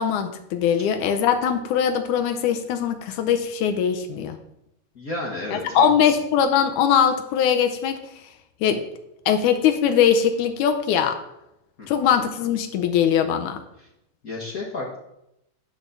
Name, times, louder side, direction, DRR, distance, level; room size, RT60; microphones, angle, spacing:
voice 1, 0.0-4.4 5.5-8.0 8.6-8.8 9.3-11.2 11.9-13.6, left 8 dB, 80° left, 6 dB, 2.1 m, -21 dB
voice 2, 4.9-6.1 11.8-12.1 14.2-15.0, left 2 dB, 60° left, -3 dB, 0.9 m, -32 dB
11.0 x 3.8 x 6.7 m, 0.84 s
omnidirectional pair, 3.4 m